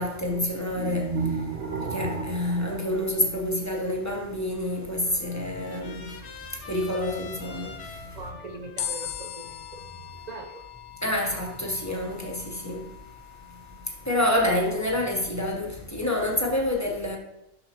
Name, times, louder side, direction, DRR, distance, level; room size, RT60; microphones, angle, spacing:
voice 1, 0.0-8.2 11.0-13.0 13.5-17.2, left 1 dB, 15° left, 1.0 m, -28 dB
sound 1, 0.7-3.9, right 4 dB, 45° right, 0.9 m, -33 dB
Trumpet, 4.6-10.8, left 4 dB, 60° left, 1.1 m, -46 dB
voice 2, 8.1-10.7, right 3 dB, 85° right, 0.3 m, -41 dB
sound 2, 8.8-15.2, left 11 dB, 75° left, 1.1 m, -40 dB
6.9 x 5.7 x 3.0 m
omnidirectional pair, 1.5 m